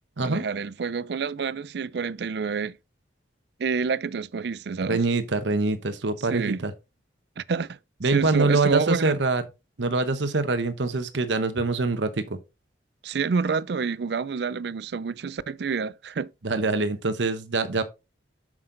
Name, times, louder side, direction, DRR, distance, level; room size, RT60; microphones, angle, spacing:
voice 1, 0.2-2.8 3.6-5.0 6.3-6.6 7.4-7.8 8.1-9.2 13.0-16.3, right 5 dB, 65° right, 0.4 m, -28 dB
voice 2, 4.9-6.7 8.0-9.4 9.8-12.4 16.4-17.8, right 3 dB, 80° right, 0.9 m, -24 dB
7.6 x 6.2 x 3.8 m
head